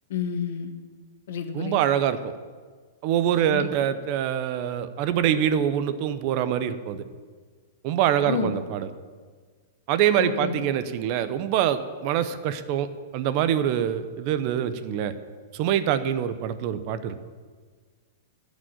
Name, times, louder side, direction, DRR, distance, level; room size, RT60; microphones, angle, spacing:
voice 1, 0.1-0.7 1.3-1.8 3.4-3.7 8.3-8.5 10.2-10.6, left 6 dB, 65° left, 7 dB, 1.4 m, -29 dB
voice 2, 1.5-2.3 3.0-7.0 7.8-8.9 9.9-12.9 13.1-15.1 15.5-17.2, right 10 dB, 35° right, 12 dB, 0.7 m, -25 dB
14.0 x 5.2 x 9.1 m, 1.5 s
supercardioid pair, 165°, 0 cm